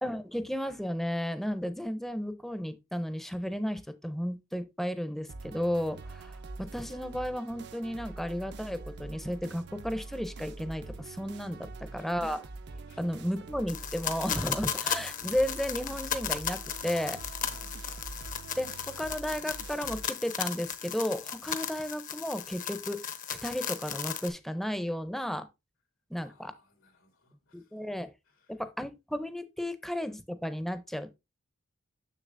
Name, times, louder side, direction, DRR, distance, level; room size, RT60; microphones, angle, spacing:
voice 1, 0.0-12.5 13.0-17.2 18.6-23.0 23.3-25.5 26.1-26.5 27.5-28.1 28.5-31.1, equal, ahead, 0.6 m, -33 dB
sound 1, 5.3-20.1, right 3 dB, 60° right, 0.5 m, -45 dB
voice 2, 11.6-12.1 12.9-13.0 17.4-17.8 26.2-27.8 28.2-28.6, left 1 dB, 90° left, 2.5 m, -61 dB
sound 2, 13.7-24.3, left 8 dB, 40° left, 0.8 m, -36 dB
6.9 x 6.6 x 2.5 m
head